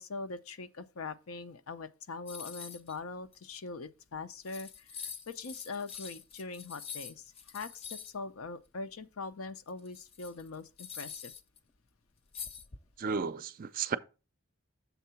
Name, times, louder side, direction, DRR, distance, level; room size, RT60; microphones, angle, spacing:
voice 1, 0.0-11.3, left 3 dB, 80° left, 0.6 m, -42 dB
sound 1, 2.3-3.0 3.3-3.4 4.1-4.2 4.4-8.1 9.7-11.6 12.3-13.1, left 7 dB, 25° left, 0.4 m, -45 dB
voice 2, 13.0-14.0, right 5 dB, 40° right, 0.4 m, -33 dB
7.1 x 3.7 x 5.6 m
head